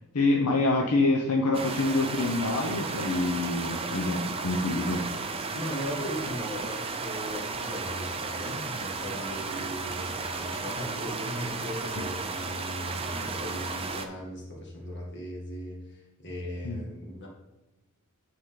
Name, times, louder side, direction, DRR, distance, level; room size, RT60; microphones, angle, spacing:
voice 1, 0.1-5.0 16.6-16.8, left 2 dB, 80° left, 0 dB, 0.8 m, -26 dB
sound 1, 1.5-14.1, right 4 dB, 25° right, 0.5 m, -34 dB
voice 2, 5.5-17.3, equal, 50° left, -3 dB, 2.1 m, -38 dB
9.2 x 4.0 x 3.8 m, 1.1 s
head